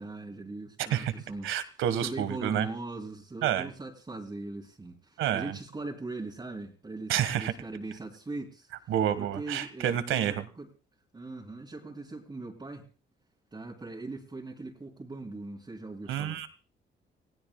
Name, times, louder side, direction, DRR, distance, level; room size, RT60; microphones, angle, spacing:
voice 1, 0.0-1.5 2.0-8.7 9.2-10.7 11.1-12.9 13.5-16.4, right 2 dB, 20° right, -3 dB, 2.7 m, -40 dB
voice 2, 1.4-2.7 3.4-3.7 5.2-5.5 7.1-7.5 8.9-10.4 16.1-16.5, right 10 dB, 90° right, 13 dB, 1.4 m, -29 dB
28.5 x 16.5 x 2.2 m, 0.34 s
cardioid pair, 90°, 20 cm